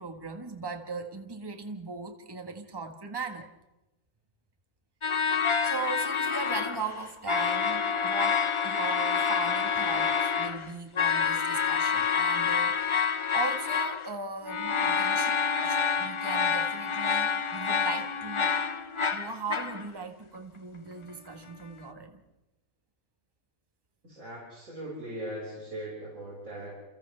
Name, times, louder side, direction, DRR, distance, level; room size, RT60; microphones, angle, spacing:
voice 1, 0.0-3.5 5.6-18.6 19.1-22.2, right 4 dB, 15° right, 5 dB, 1.6 m, -38 dB
sound 1, 5.0-7.0 7.3-14.1 14.4-19.9, left 6 dB, 35° left, 0.5 m, -27 dB
voice 2, 24.1-26.8, right 1 dB, 65° right, -6 dB, 6.6 m, -39 dB
29.5 x 29.0 x 3.5 m, 0.98 s
omnidirectional pair, 1.5 m